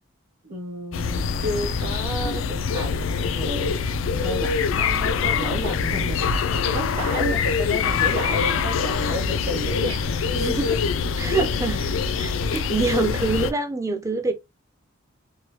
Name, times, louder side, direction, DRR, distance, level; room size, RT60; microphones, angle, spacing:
voice 1, 0.4-3.7 4.2-10.4 10.7-10.8, equal, 60° right, 0.9 m, -32 dB
sound 1, 0.9-13.5, left 5 dB, 75° left, 0.4 m, -24 dB
voice 2, 10.3-10.7 11.2-11.8 12.2-14.3, right 3 dB, 15° right, 0.5 m, -25 dB
3.0 x 2.2 x 2.8 m
head